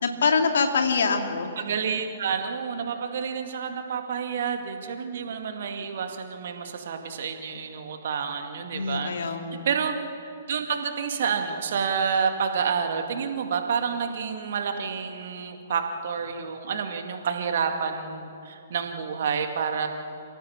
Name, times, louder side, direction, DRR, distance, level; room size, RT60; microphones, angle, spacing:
voice 1, 0.0-1.5 8.7-9.6, left 5 dB, 60° left, 4 dB, 2.4 m, -24 dB
voice 2, 1.6-9.4 9.6-10.0 10.5-19.9, right 6 dB, 50° right, 5 dB, 2.2 m, -29 dB
29.0 x 16.5 x 7.4 m, 2.6 s
figure-of-eight pair, 120°, 0 cm